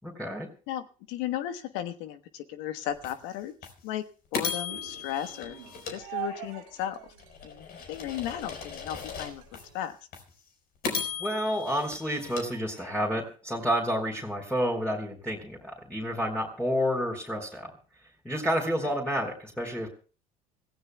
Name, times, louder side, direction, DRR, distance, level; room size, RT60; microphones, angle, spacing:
voice 1, 0.0-0.5 11.2-17.7 18.2-19.9, equal, 5° left, -1 dB, 4.0 m, -30 dB
voice 2, 0.7-3.5 3.8-4.0 4.3-5.6 5.9-7.1 7.4-10.0, left 11 dB, 70° left, 9 dB, 1.3 m, -35 dB
sound 1, 3.0-3.1 3.6-3.7 4.3-6.7 7.2-9.6 10.1-10.2 10.8-13.2, left 5 dB, 55° left, 4.5 m, -37 dB
sound 2, 4.7-9.8, right 11 dB, 80° right, 3.0 m, -44 dB
26.5 x 15.5 x 2.3 m, 0.37 s
hypercardioid pair, 70°, 19 cm